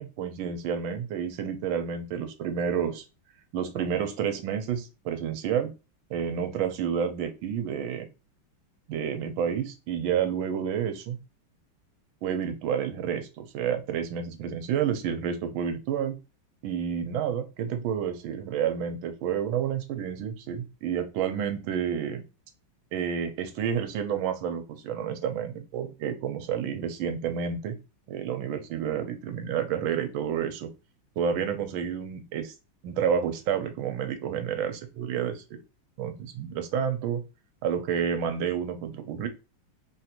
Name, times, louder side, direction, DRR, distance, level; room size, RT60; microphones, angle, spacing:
voice 1, 0.0-2.9 3.5-5.7 6.1-8.1 8.9-11.2 12.2-16.2 16.6-22.2 22.9-27.7 28.1-30.7 31.2-32.5 32.8-35.6 36.0-37.2 37.6-39.3, right 8 dB, 75° right, 7 dB, 1.3 m, -30 dB
3.7 x 2.5 x 2.8 m, 0.28 s
omnidirectional pair, 2.4 m